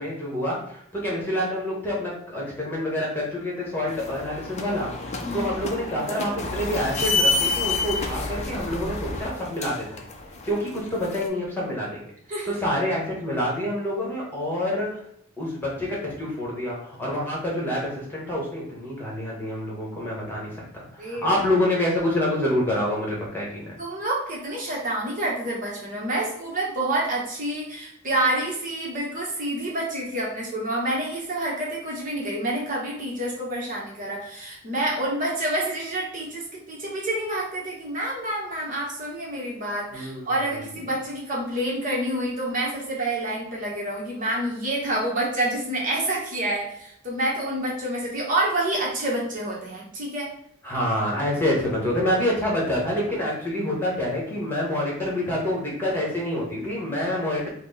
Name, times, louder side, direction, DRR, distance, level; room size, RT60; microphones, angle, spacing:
voice 1, 0.0-10.0 10.4-12.1 12.4-15.0 15.4-20.6 20.9-23.7 39.9-40.3 50.6-57.5, left 1 dB, 10° left, -5 dB, 1.2 m, -27 dB
sound 1, 3.9-11.3, left 3 dB, 35° left, 0.5 m, -29 dB
voice 2, 5.2-5.5 12.3-12.6 21.0-21.3 23.8-50.3, right 1 dB, 40° right, -3 dB, 1.0 m, -28 dB
4.4 x 2.1 x 3.9 m, 0.68 s
head